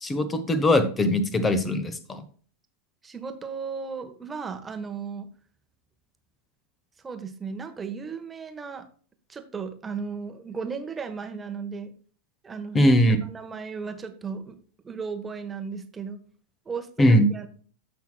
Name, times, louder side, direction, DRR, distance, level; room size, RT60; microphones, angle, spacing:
voice 1, 0.0-2.2 12.7-13.2 17.0-17.3, left 1 dB, 15° left, 12 dB, 1.1 m, -20 dB
voice 2, 3.0-5.3 7.0-8.9 9.3-11.9 12.4-13.0 13.3-14.6 14.8-16.2 16.6-17.5, right 5 dB, 15° right, 7 dB, 1.2 m, -35 dB
14.5 x 5.9 x 2.3 m, 0.43 s
figure-of-eight pair, 90°, 0 cm